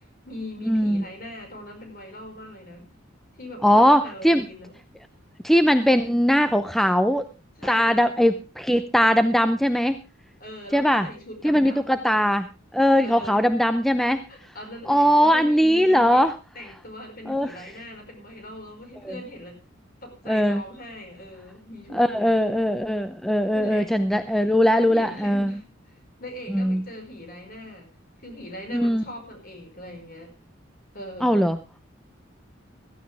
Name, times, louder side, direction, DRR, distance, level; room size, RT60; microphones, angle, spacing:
voice 1, 0.0-2.9 3.3-4.8 6.1-6.2 7.6-8.0 10.4-12.1 13.0-13.5 14.3-16.2 16.6-19.6 20.0-22.4 23.5-23.9 24.4-24.5 24.7-27.9 28.2-30.3 30.9-31.5, left 1 dB, 45° left, 5 dB, 5.3 m, -40 dB
voice 2, 0.7-1.0 3.6-4.5 5.4-7.3 7.6-10.0 10.7-11.1 11.4-12.5 12.7-14.2 14.9-16.3 17.3-17.6 19.0-19.2 20.3-20.6 21.9-25.6 26.5-26.8 28.7-29.0 31.2-31.6, equal, ahead, 8 dB, 0.6 m, -20 dB
15.5 x 15.0 x 3.5 m, 0.30 s
head